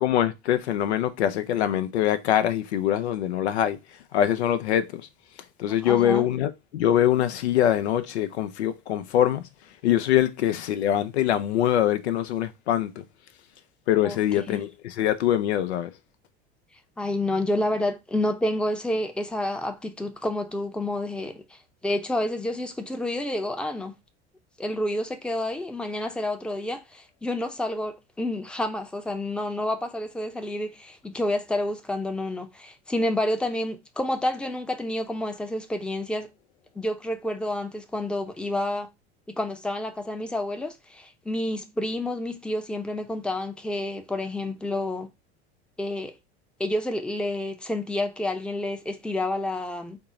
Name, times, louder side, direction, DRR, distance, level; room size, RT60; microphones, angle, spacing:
voice 1, 0.0-3.8 4.1-5.1 5.6-9.4 9.8-13.0 13.9-15.9, left 11 dB, 85° left, 0.5 m, -23 dB
voice 2, 5.7-6.2 14.0-14.2 14.5-14.6 17.0-23.9 24.6-36.3 36.8-38.9 39.3-45.1 45.8-46.1 46.6-50.0, left 1 dB, 5° left, 0.6 m, -29 dB
4.4 x 2.0 x 3.6 m
hypercardioid pair, 80°, 32 cm